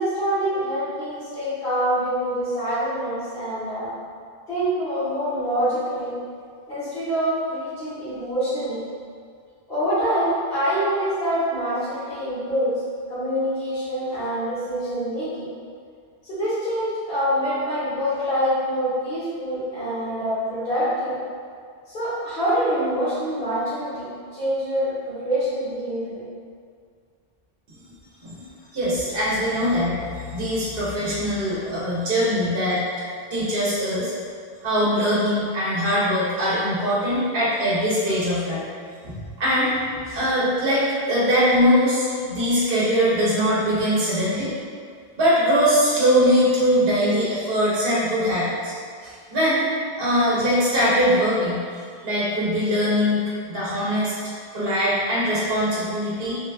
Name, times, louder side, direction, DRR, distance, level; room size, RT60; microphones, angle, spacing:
voice 1, 0.0-3.9 4.5-6.1 6.7-8.8 9.7-12.7 13.1-15.5 16.3-21.1 21.9-24.1 24.3-26.2, equal, 60° left, -10 dB, 1.3 m, -25 dB
voice 2, 28.7-32.8 33.3-34.1 34.6-38.7 39.0-44.5 45.2-48.7 49.0-49.6 50.0-54.1 54.5-56.4, equal, 65° right, -8 dB, 0.8 m, -22 dB
3.4 x 2.2 x 2.3 m, 2.1 s
omnidirectional pair, 1.1 m